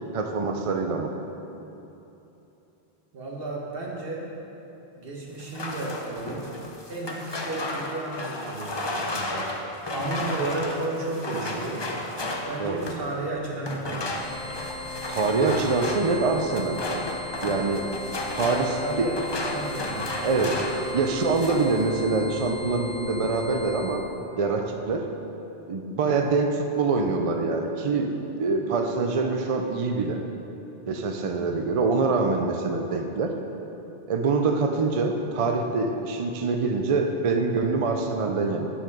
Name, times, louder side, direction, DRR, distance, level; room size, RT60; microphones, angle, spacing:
voice 1, 0.1-1.1 12.6-12.8 15.1-16.8 17.4-17.9 18.3-19.1 20.2-20.6 20.9-24.0 24.4-25.1 25.7-28.1 28.4-30.2 30.9-33.3 34.1-38.7, right 4 dB, 45° right, 4 dB, 0.5 m, -25 dB
voice 2, 3.1-4.3 5.0-6.5 6.9-11.9 12.5-14.2 18.5-20.6, right 2 dB, 60° right, -1 dB, 1.3 m, -33 dB
sound 1, 5.4-13.1 13.6-20.9 21.2-21.8, left 2 dB, 30° left, 0.6 m, -33 dB
sound 2, 14.1-24.0, left 2 dB, 5° left, 1.1 m, -37 dB
8.6 x 5.6 x 5.2 m, 3.0 s
omnidirectional pair, 1.1 m